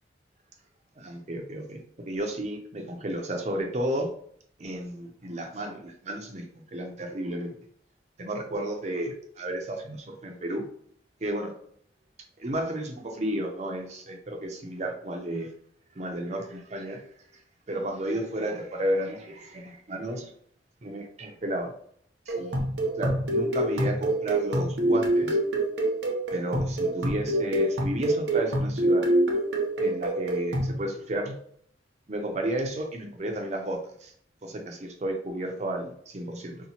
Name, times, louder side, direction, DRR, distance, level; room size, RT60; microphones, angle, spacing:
voice 1, 1.0-1.8 2.1-4.1 4.6-6.4 6.7-7.5 8.2-10.6 11.2-11.5 12.4-15.5 16.0-17.0 17.7-20.3 20.8-21.7 22.4-22.6 23.0-25.4 26.3-29.1 29.8-31.4 32.1-34.1 34.4-36.6, right 1 dB, 40° right, 3 dB, 0.5 m, -32 dB
sound 1, 22.3-30.8, right 1 dB, 75° right, 0.7 m, -26 dB
2.9 x 2.1 x 4.1 m, 0.63 s
head